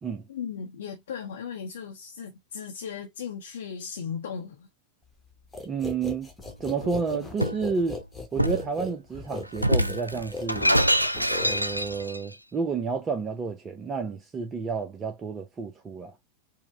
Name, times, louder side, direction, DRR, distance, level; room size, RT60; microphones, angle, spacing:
voice 1, 0.3-4.7, left 7 dB, 60° left, 0.7 m, -37 dB
sound 1, 5.5-12.0, left 3 dB, 10° left, 1.2 m, -38 dB
voice 2, 5.6-6.3 6.6-8.0 8.3-10.8 11.4-16.2, right 5 dB, 20° right, 0.6 m, -30 dB
Shatter, 6.8-7.7 8.4-8.7 9.6-12.2, equal, 90° right, 0.3 m, -25 dB
4.7 x 2.1 x 3.5 m
figure-of-eight pair, 90°, 0 cm